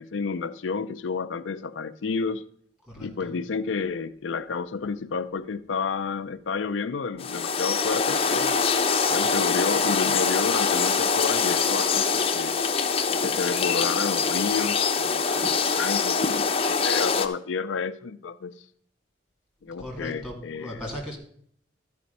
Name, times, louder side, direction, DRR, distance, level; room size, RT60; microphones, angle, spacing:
voice 1, 0.0-2.4 3.0-8.5 9.1-12.6 13.2-18.7 19.6-20.8, left 5 dB, 80° left, 0.5 m, -30 dB
voice 2, 2.9-3.4 19.7-21.2, left 1 dB, 5° right, 2.6 m, -38 dB
sound 1, 7.2-17.3, left 5 dB, 30° left, 0.7 m, -24 dB
13.0 x 5.1 x 5.3 m
head